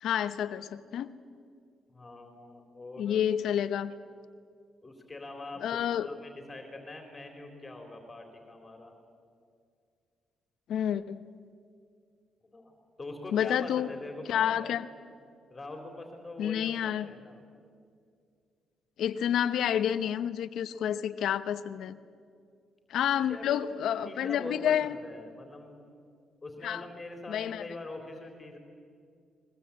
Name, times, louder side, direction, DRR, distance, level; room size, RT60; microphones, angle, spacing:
voice 1, 0.0-1.1 3.0-3.9 5.6-6.1 10.7-11.2 13.3-13.9 14.3-14.9 16.4-17.1 19.0-22.0 22.9-25.0 26.6-26.8 27.3-27.7, left 9 dB, 75° left, 13 dB, 0.9 m, -29 dB
voice 2, 1.9-3.2 4.8-8.9 12.4-14.8 15.5-17.4 23.3-23.5 24.1-25.8 26.4-28.6, left 2 dB, 25° left, 4 dB, 3.8 m, -43 dB
22.0 x 21.5 x 8.6 m, 2.3 s
cardioid pair, 90°, 0 cm